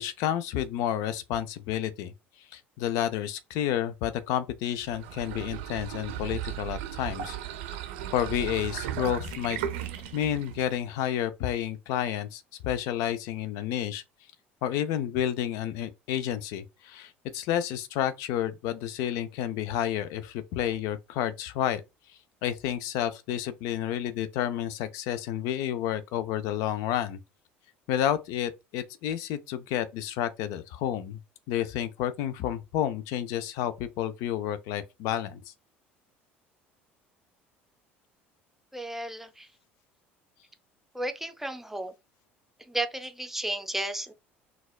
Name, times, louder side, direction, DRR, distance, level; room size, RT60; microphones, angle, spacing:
voice 1, 0.0-7.4 8.1-9.6 10.1-14.0 14.6-21.8 22.1-27.2 27.9-31.2 31.5-35.5, left 11 dB, 60° left, 0.3 m, -30 dB
sound 1, 4.8-10.9, right 11 dB, 70° right, 0.5 m, -36 dB
voice 2, 38.7-39.5 40.9-41.9 42.7-44.1, right 1 dB, 5° right, 0.5 m, -33 dB
3.9 x 2.3 x 2.2 m
hypercardioid pair, 65°, 6 cm